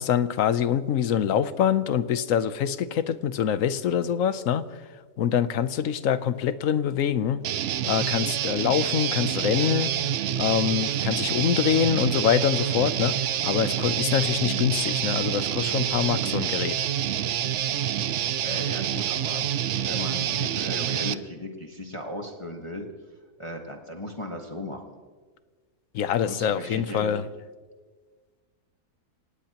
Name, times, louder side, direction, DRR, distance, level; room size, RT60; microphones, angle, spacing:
voice 1, 0.0-4.7 5.2-7.4 7.8-10.0 10.3-16.9 25.9-27.2, left 9 dB, 65° left, 13 dB, 1.1 m, -25 dB
Guitar, 7.4-21.1, right 10 dB, 65° right, 0.7 m, -27 dB
voice 2, 18.4-19.5 19.8-22.9 23.4-25.0 26.3-27.1, left 1 dB, 20° left, 1 dB, 1.4 m, -36 dB
26.5 x 18.5 x 3.0 m, 1.4 s
omnidirectional pair, 1.7 m